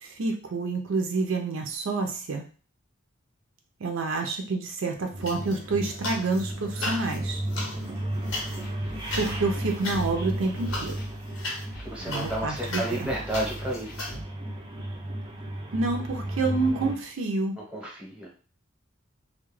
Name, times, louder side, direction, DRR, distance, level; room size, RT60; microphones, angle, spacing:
voice 1, 0.0-2.5 3.8-7.4 9.2-10.9 12.1-13.1 15.7-17.5, right 3 dB, 75° right, 3 dB, 0.5 m, -28 dB
sound 1, 5.1-17.0, right 1 dB, 25° right, 0.4 m, -34 dB
sound 2, 5.2-6.4 6.7-14.2, left 2 dB, 85° left, 0.8 m, -37 dB
sound 3, 8.3-14.2, right 1 dB, 50° left, 0.6 m, -44 dB
voice 2, 11.8-14.2 17.6-18.3, right 1 dB, 5° right, -3 dB, 0.8 m, -32 dB
2.3 x 2.1 x 3.1 m, 0.38 s
head